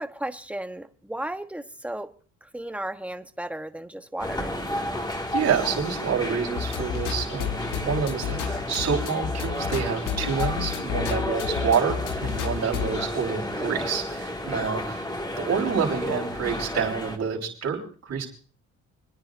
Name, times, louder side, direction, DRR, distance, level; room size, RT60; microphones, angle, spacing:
voice 1, 0.0-2.1 2.4-4.5 14.4-14.7, right 1 dB, 5° right, 1.1 m, -35 dB
sound 1, 4.2-17.2, left 1 dB, 15° left, 2.0 m, -32 dB
voice 2, 5.3-15.1 15.4-18.3, right 6 dB, 60° right, 4.5 m, -28 dB
sound 2, 6.6-13.1, left 8 dB, 85° left, 1.4 m, -31 dB
29.5 x 10.0 x 2.6 m
cardioid pair, 90°, 30 cm